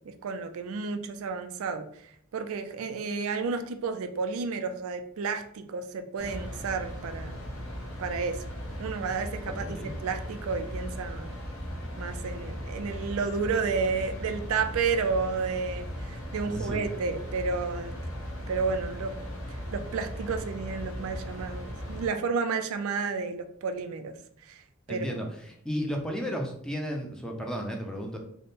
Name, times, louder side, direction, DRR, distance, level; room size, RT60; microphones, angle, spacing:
voice 1, 0.1-7.4 8.0-8.4 8.8-11.3 12.0-18.0 18.5-19.1 19.5-24.1 24.4-24.6 24.9-25.3, right 4 dB, 70° right, 8 dB, 0.4 m, -31 dB
sound 1, 6.2-22.1, equal, 65° left, 0.9 m, -38 dB
voice 2, 9.4-9.9 16.5-16.8 24.9-28.2, equal, 5° left, 1 dB, 0.5 m, -34 dB
3.5 x 2.1 x 4.0 m, 0.66 s
head